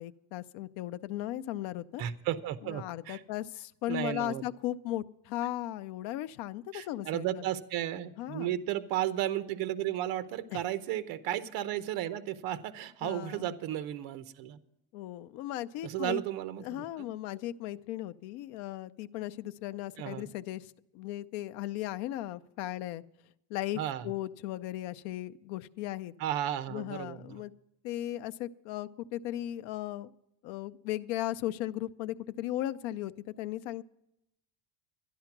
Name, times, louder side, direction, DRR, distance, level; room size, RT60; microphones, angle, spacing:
voice 1, 0.0-2.0 2.6-7.3 8.2-8.6 10.5-10.6 13.0-13.5 14.9-16.2 16.6-23.0 23.5-26.1 26.7-27.5 27.8-30.1 30.4-33.1 33.4-33.8, left 14 dB, 75° left, 13 dB, 0.7 m, -37 dB
voice 2, 2.0-3.2 3.9-4.4 6.7-14.6 15.8-17.1 20.0-20.3 23.8-24.1 26.2-27.4, right 12 dB, 50° right, 13 dB, 0.8 m, -34 dB
12.5 x 11.0 x 5.9 m, 0.83 s
cardioid pair, 160°, 46 cm